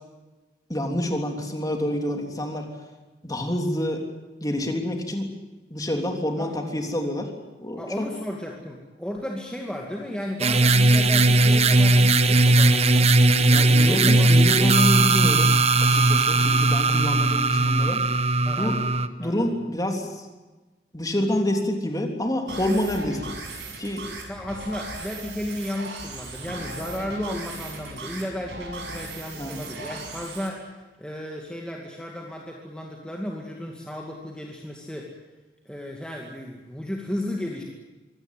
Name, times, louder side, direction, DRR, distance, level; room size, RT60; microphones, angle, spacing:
voice 1, 0.7-2.7 3.2-4.0 4.4-5.4 5.7-7.3 7.6-8.1 13.5-18.0 18.6-18.8 19.2-20.1 20.9-23.3 23.8-24.1 29.4-29.6, left 1 dB, 20° left, 3 dB, 3.4 m, -27 dB
voice 2, 7.8-14.3 18.4-18.8 19.2-19.5 24.3-35.1 35.7-37.6, left 1 dB, 5° left, -1 dB, 2.4 m, -34 dB
sound 1, 10.4-19.1, right 2 dB, 35° right, 1.0 m, -18 dB
sound 2, 22.5-30.5, right 2 dB, 75° right, 6.7 m, -37 dB
24.5 x 17.5 x 9.3 m, 1.2 s
head